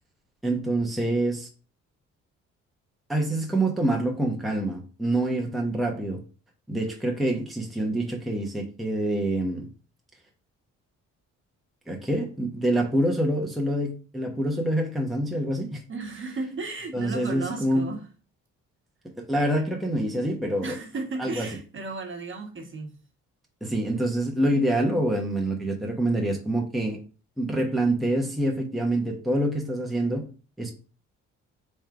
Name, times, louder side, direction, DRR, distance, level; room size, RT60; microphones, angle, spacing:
voice 1, 0.4-1.5 3.1-6.2 6.7-9.7 11.9-15.8 16.9-17.8 19.2-20.7 21.2-21.5 23.6-27.0 27.4-30.2 30.6-30.7, right 1 dB, ahead, 0.9 m, -26 dB
voice 2, 15.9-18.0 20.6-22.9, right 3 dB, 40° right, 1.2 m, -34 dB
3.5 x 3.2 x 4.7 m
cardioid pair, 90°, 30 cm